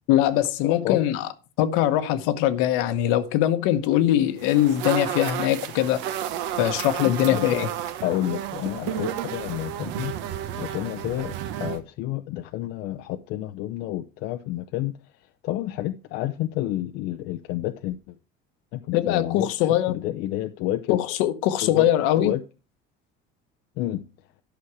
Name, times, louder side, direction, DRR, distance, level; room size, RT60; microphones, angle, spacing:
voice 1, 0.1-1.3 1.6-6.0 6.6-7.7 18.9-20.0 20.9-22.3, left 12 dB, 75° left, 1.1 m, -22 dB
voice 2, 0.6-1.0 7.0-7.7 8.0-10.1 10.5-11.3 11.6-14.9 15.4-18.2 18.7-21.0 21.6-21.9 22.2-22.4 23.8-24.1, left 14 dB, 60° left, 0.6 m, -29 dB
sound 1, 4.4-11.8, right 11 dB, 65° right, 1.1 m, -32 dB
11.5 x 6.3 x 4.7 m
cardioid pair, 170°, 21 cm